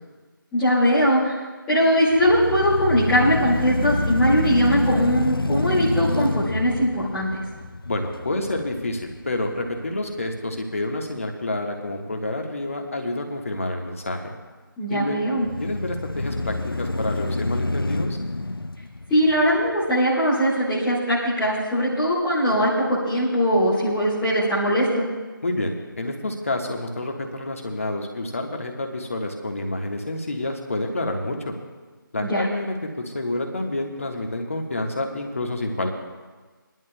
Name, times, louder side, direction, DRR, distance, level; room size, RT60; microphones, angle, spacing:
voice 1, 0.5-1.3 1.7-7.4 14.8-15.5 19.1-25.0 32.2-32.4, equal, 5° left, -12 dB, 0.9 m, -20 dB
sound 1, 2.1-10.2 10.7-10.8 15.4-19.8, left 2 dB, 80° left, 0.6 m, -28 dB
voice 2, 7.8-14.3 14.9-15.2 15.6-18.2 25.4-31.5 32.1-32.9 33.1-35.9, left 2 dB, 40° left, 2 dB, 1.4 m, -28 dB
26.0 x 11.0 x 2.2 m, 1.3 s
figure-of-eight pair, 165°, 12 cm